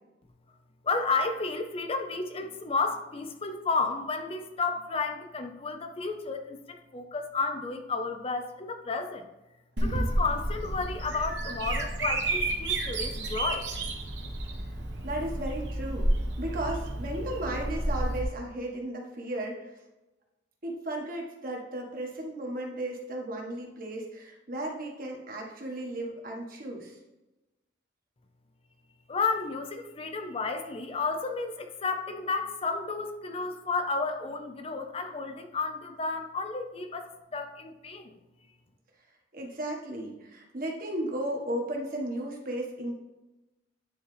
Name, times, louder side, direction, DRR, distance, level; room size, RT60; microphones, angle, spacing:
voice 1, 0.8-9.3 9.8-13.7 29.1-38.1, left 4 dB, 30° left, 6 dB, 0.5 m, -32 dB
Bird vocalization bird call bird song, 9.8-18.2, right 1 dB, 65° right, 1.2 m, -31 dB
voice 2, 15.0-16.1 16.4-19.7 20.6-27.0 39.3-42.9, right 1 dB, 45° right, 0 dB, 1.4 m, -35 dB
9.7 x 4.0 x 3.3 m, 1.0 s
head